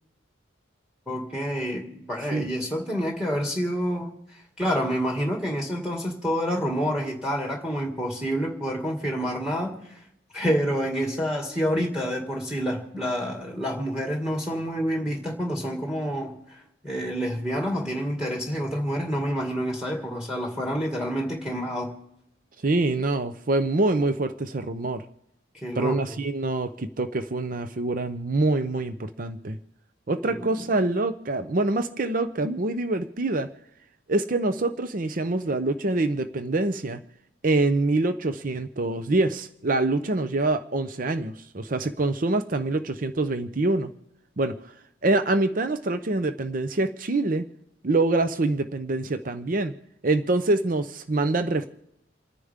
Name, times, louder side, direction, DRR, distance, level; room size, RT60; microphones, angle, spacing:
voice 1, 1.1-9.8 10.3-21.9 25.6-26.2 30.2-30.5, equal, 5° right, 1 dB, 2.1 m, -28 dB
voice 2, 22.6-25.0 25.8-29.6 30.1-33.5 34.1-37.0 37.4-43.9 44.4-44.7 45.0-47.4 47.8-49.7 50.0-51.7, right 2 dB, 45° right, 9 dB, 0.7 m, -25 dB
29.0 x 10.0 x 3.6 m, 0.83 s
head